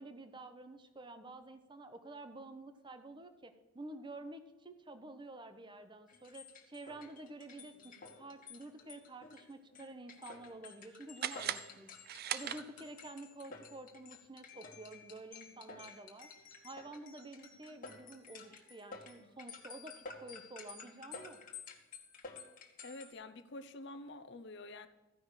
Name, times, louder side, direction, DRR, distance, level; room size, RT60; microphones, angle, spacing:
voice 1, 0.0-12.0 12.3-21.4, right 2 dB, 20° right, 9 dB, 0.8 m, -50 dB
sound 1, 6.1-23.1, left 4 dB, 40° left, 1.4 m, -52 dB
sound 2, 11.2-13.1, right 10 dB, 45° right, 0.4 m, -40 dB
voice 2, 22.8-24.9, left 2 dB, 55° left, 11 dB, 0.7 m, -48 dB
14.5 x 5.6 x 6.4 m, 1.1 s
head